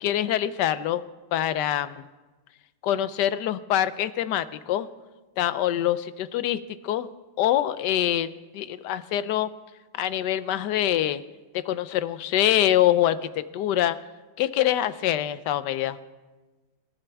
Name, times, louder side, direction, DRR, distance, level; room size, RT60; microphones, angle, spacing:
voice 1, 0.0-1.0 1.3-2.1 2.8-4.9 5.4-7.1 7.4-9.5 10.0-11.2 11.7-14.0 14.4-16.0, left 12 dB, 70° left, 14 dB, 1.2 m, -25 dB
26.5 x 12.5 x 3.4 m, 1.2 s
omnidirectional pair, 2.0 m